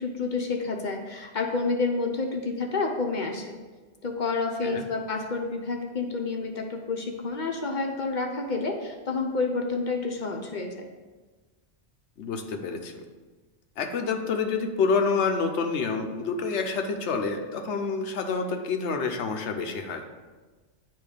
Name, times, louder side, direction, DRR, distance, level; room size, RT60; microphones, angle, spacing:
voice 1, 0.0-3.6 4.0-10.9, left 3 dB, 50° left, 2 dB, 0.8 m, -29 dB
voice 2, 12.2-13.0 13.8-20.0, left 4 dB, 85° left, 4 dB, 1.0 m, -28 dB
8.8 x 3.1 x 4.9 m, 1.3 s
omnidirectional pair, 1.1 m